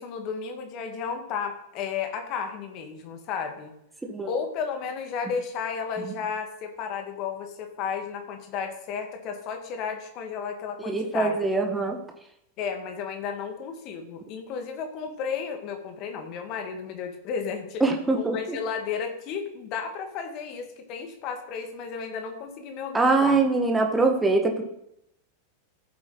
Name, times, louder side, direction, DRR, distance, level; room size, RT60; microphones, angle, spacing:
voice 1, 0.0-3.7 4.2-11.4 12.6-23.4, left 6 dB, 40° left, 5 dB, 2.1 m, -33 dB
voice 2, 10.8-12.0 17.8-18.6 22.9-24.6, right 3 dB, 10° right, 3 dB, 1.6 m, -23 dB
14.5 x 8.0 x 4.1 m, 0.79 s
figure-of-eight pair, 90°, 0 cm